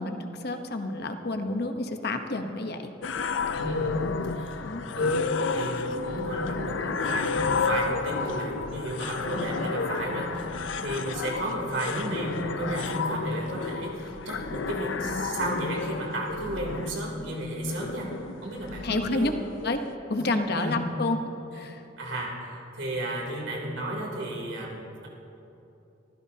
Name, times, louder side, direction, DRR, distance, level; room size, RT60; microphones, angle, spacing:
voice 1, 0.0-2.9 4.6-4.8 18.8-19.3 19.6-19.8 20.1-21.2 21.5-21.8, left 2 dB, 55° left, 6 dB, 1.0 m, -29 dB
sound 1, 3.0-19.9, left 4 dB, 80° left, 0.6 m, -31 dB
voice 2, 3.5-4.0 4.3-4.7 4.9-5.2 5.5-10.5 10.8-18.1 18.4-19.4 20.2-20.3 20.5-20.7 22.0-25.1, right 1 dB, 85° right, -2 dB, 3.2 m, -33 dB
24.5 x 15.0 x 2.8 m, 3.0 s
head